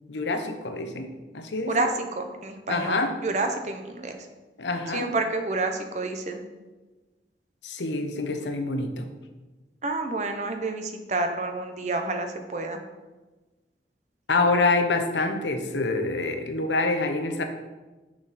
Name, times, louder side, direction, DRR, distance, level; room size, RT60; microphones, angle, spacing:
voice 1, 0.1-1.1 1.3-1.9 2.7-3.1 4.6-5.1 7.6-9.1 14.3-17.4, left 3 dB, 80° left, 6 dB, 0.8 m, -26 dB
voice 2, 2.2-4.1 4.9-6.4 9.8-12.8, right 3 dB, 40° right, 5 dB, 0.7 m, -29 dB
6.4 x 6.0 x 4.1 m, 1.2 s
head